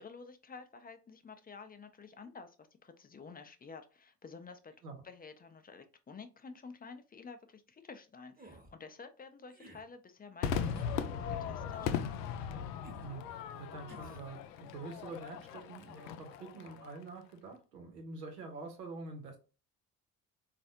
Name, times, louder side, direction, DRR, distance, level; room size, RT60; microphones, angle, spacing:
voice 1, 0.0-2.6 2.8-4.7 5.0-12.0, left 4 dB, 20° left, 9 dB, 0.5 m, -51 dB
sound 1, 8.4-8.7 9.5-9.8 10.6-10.9 11.8-12.1 12.8-13.1 13.9-14.3, right 2 dB, 20° right, 1.0 m, -53 dB
Crowd / Fireworks, 10.4-17.0, left 7 dB, 75° left, 0.5 m, -38 dB
voice 2, 13.5-19.4, right 3 dB, 85° right, 3 dB, 1.0 m, -46 dB
4.0 x 2.5 x 2.7 m, 0.33 s
figure-of-eight pair, 50°, 47 cm